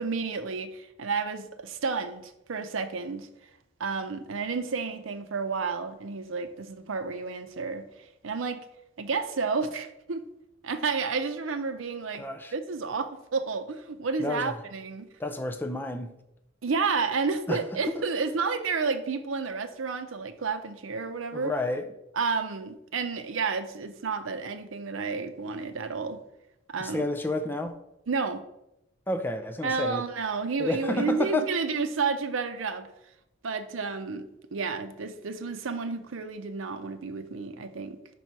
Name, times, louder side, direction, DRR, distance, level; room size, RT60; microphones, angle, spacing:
voice 1, 0.0-3.3 3.8-8.6 9.0-10.2 10.6-12.2 12.5-15.1 16.6-21.5 22.2-26.2 26.7-27.1 28.1-28.4 29.6-32.9 33.4-34.2 34.5-38.0, right 4 dB, 85° right, 0.6 m, -31 dB
voice 2, 12.2-12.5 14.2-14.6 15.2-16.1 17.5-17.6 21.3-21.9 26.8-27.8 29.1-30.0 30.6-31.5, left 2 dB, 10° left, 0.4 m, -30 dB
5.3 x 4.3 x 4.6 m
head